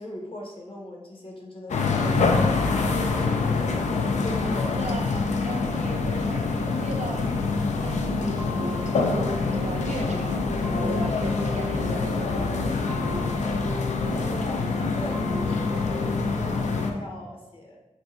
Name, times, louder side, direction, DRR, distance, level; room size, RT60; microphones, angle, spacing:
voice 1, 0.0-2.3 2.9-4.7 13.9-17.8, left 1 dB, 45° left, -1 dB, 0.8 m, -40 dB
sound 1, 1.7-16.9, left 4 dB, 75° left, 0.4 m, -25 dB
voice 2, 4.5-6.5 6.8-7.3 7.8-13.4, right 2 dB, 65° right, 2 dB, 0.5 m, -37 dB
sound 2, 8.0-16.2, left 1 dB, 15° right, 0.8 m, -36 dB
2.6 x 2.2 x 4.1 m, 0.99 s
cardioid pair, 40°, 12 cm